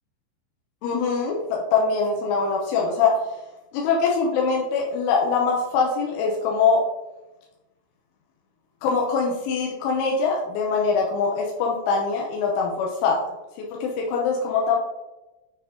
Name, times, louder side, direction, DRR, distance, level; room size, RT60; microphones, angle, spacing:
voice 1, 0.8-3.2 3.7-6.8 8.8-13.2 13.7-14.8, left 5 dB, 85° left, -2 dB, 3.4 m, -23 dB
9.2 x 3.8 x 3.7 m, 1.0 s
omnidirectional pair, 5.4 m